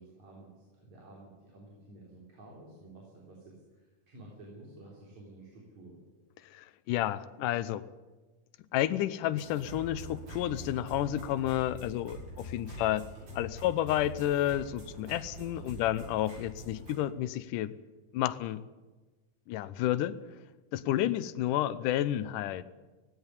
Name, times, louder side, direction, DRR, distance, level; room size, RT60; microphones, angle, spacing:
voice 1, 0.0-6.0 20.9-21.0, right 2 dB, 60° right, -3 dB, 5.1 m, -52 dB
voice 2, 6.5-7.8 8.7-13.1 13.3-17.7 18.1-18.6 19.5-20.2 20.7-22.6, left 13 dB, 80° left, 13 dB, 2.3 m, -31 dB
sound 1, 9.3-16.9, right 1 dB, 80° right, 9.5 m, -45 dB
17.0 x 16.0 x 9.7 m, 1.2 s
omnidirectional pair, 3.8 m